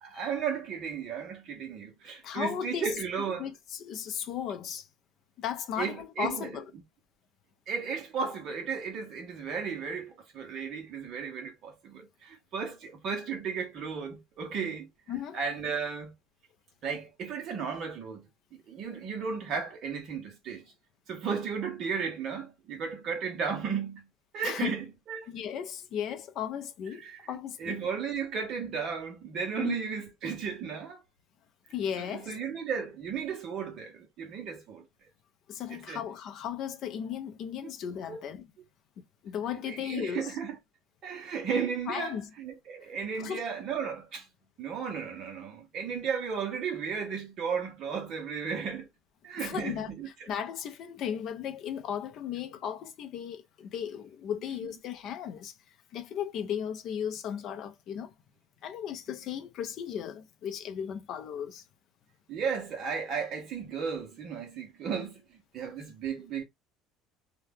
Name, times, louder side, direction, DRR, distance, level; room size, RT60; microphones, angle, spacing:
voice 1, 0.0-3.5 5.8-6.6 7.7-14.9 15.3-16.1 16.8-18.2 18.5-20.7 21.1-24.1 24.3-25.3 26.9-31.0 32.0-34.8 35.7-36.0 38.1-38.2 39.7-40.5 41.0-44.3 44.6-48.9 49.2-50.3 54.5-54.6 62.3-66.4, right 6 dB, 40° right, 1.1 m, -34 dB
voice 2, 2.2-2.9 3.4-4.9 5.4-6.6 15.1-15.4 24.4-24.8 25.3-27.8 29.6-29.8 31.7-32.4 35.5-38.4 39.0-40.3 41.9-42.3 43.2-43.4 49.4-49.9 50.3-55.5 55.9-58.1 58.6-61.6, left 9 dB, 45° left, 0.6 m, -36 dB
2.8 x 2.3 x 3.4 m
cardioid pair, 170°, 0 cm